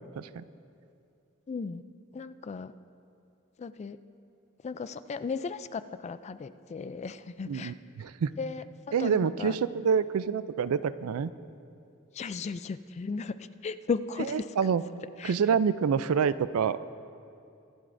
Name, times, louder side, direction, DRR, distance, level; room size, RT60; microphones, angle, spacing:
voice 1, 1.5-1.8 2.1-2.7 3.6-4.0 4.6-8.1 8.4-9.6 12.1-14.5 15.2-15.4, left 5 dB, 30° left, 13 dB, 0.3 m, -36 dB
voice 2, 7.5-8.3 8.9-11.3 14.6-14.8 15.2-16.8, right 6 dB, 75° right, 15 dB, 0.4 m, -27 dB
24.5 x 11.0 x 2.6 m, 2.5 s
head